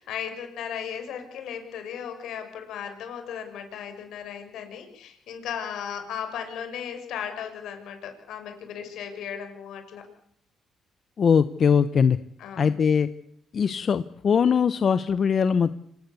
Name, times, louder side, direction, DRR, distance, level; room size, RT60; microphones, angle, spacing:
voice 1, 0.0-10.0 12.4-12.8, left 8 dB, 80° left, 6 dB, 6.5 m, -36 dB
voice 2, 11.2-12.2 12.6-13.1 13.5-15.7, left 6 dB, 50° left, 13 dB, 1.0 m, -21 dB
26.5 x 19.0 x 8.4 m, 0.70 s
cardioid pair, 90°, 0 cm